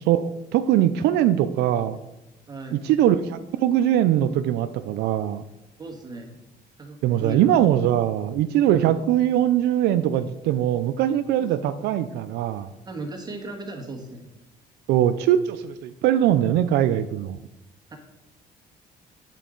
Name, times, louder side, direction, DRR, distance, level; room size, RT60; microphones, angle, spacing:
voice 1, 0.1-2.0 2.7-5.4 7.0-12.7 14.9-17.4, right 11 dB, 80° right, 11 dB, 0.4 m, -21 dB
voice 2, 2.5-2.8 5.8-6.4 6.8-7.7 8.7-9.0 11.4-11.9 12.8-14.3 17.9-18.0, right 2 dB, 25° right, 1 dB, 1.5 m, -36 dB
9.1 x 4.6 x 3.8 m, 0.96 s
cardioid pair, 110°, 17 cm